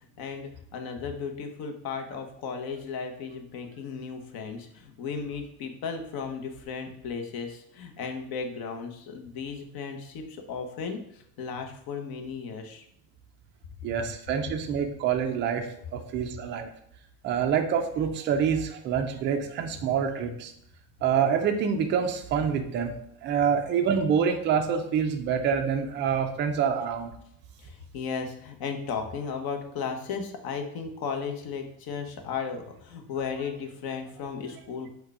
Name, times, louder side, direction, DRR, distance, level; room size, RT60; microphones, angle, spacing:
voice 1, 0.2-12.8 27.6-34.9, left 5 dB, 45° left, 5 dB, 0.9 m, -35 dB
voice 2, 13.8-16.7 17.2-20.5 21.0-22.9 23.2-27.1, right 7 dB, 25° right, 5 dB, 0.3 m, -26 dB
4.5 x 2.3 x 4.7 m, 0.70 s
supercardioid pair, 115°, 50 cm